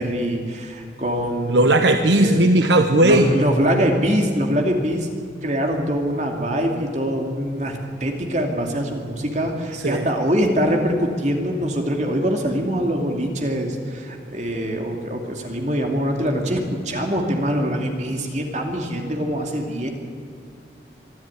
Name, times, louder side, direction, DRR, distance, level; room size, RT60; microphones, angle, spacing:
voice 1, 0.0-2.5 3.0-5.1 5.4-19.9, equal, 40° right, 2 dB, 2.5 m, -23 dB
voice 2, 1.5-3.3 9.7-10.1, right 1 dB, 85° right, 6 dB, 1.1 m, -16 dB
25.0 x 12.0 x 9.6 m, 2.4 s
head